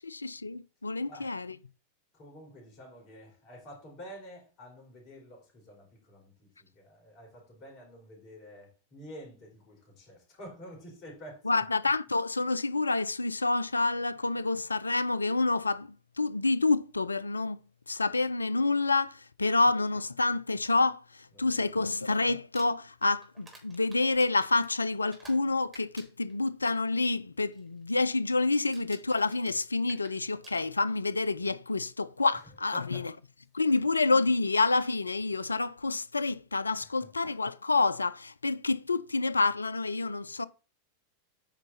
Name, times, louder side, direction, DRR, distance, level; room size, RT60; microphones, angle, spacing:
voice 1, 0.0-1.5 11.5-17.6 17.9-33.1 33.5-40.5, left 3 dB, 80° left, 0.4 m, -28 dB
voice 2, 2.1-11.6 21.3-21.9 32.3-32.4 32.7-33.1 33.7-33.8 36.8-37.1, equal, 35° left, 4.5 m, -49 dB
Crumpling crinkling, 22.6-25.5 25.7-27.1 27.5-27.8 28.1-28.4 28.7-31.1 32.1-32.2 34.1-34.2 34.7-34.9, right 2 dB, 15° right, 3.8 m, -55 dB
8.9 x 5.0 x 4.2 m
figure-of-eight pair, 90°, 0 cm